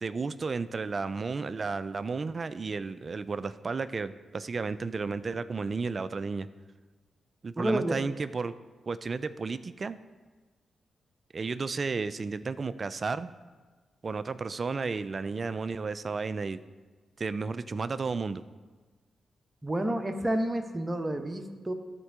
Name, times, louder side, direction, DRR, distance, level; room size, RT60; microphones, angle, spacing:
voice 1, 0.0-6.5 7.4-8.5 8.9-10.0 11.3-13.3 14.0-16.6 17.2-18.4, right 4 dB, 50° right, 14 dB, 0.4 m, -33 dB
voice 2, 7.6-7.9 19.6-21.7, right 1 dB, 25° right, 5 dB, 1.1 m, -30 dB
12.5 x 4.5 x 4.9 m, 1.4 s
supercardioid pair, 45°, 0 cm